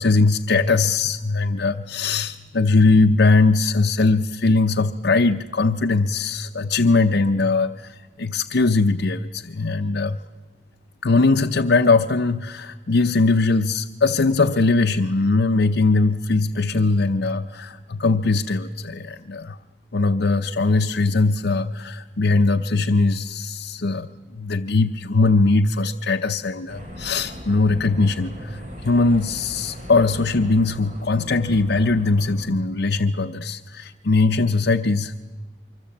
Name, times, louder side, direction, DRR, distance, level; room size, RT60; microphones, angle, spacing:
voice 1, 0.0-10.2 11.0-19.6 19.9-24.1 24.3-35.1, left 3 dB, 70° left, 5 dB, 0.7 m, -20 dB
sound 1, 26.7-32.5, equal, 40° right, 4.4 m, -39 dB
25.0 x 24.5 x 8.6 m, 1.4 s
head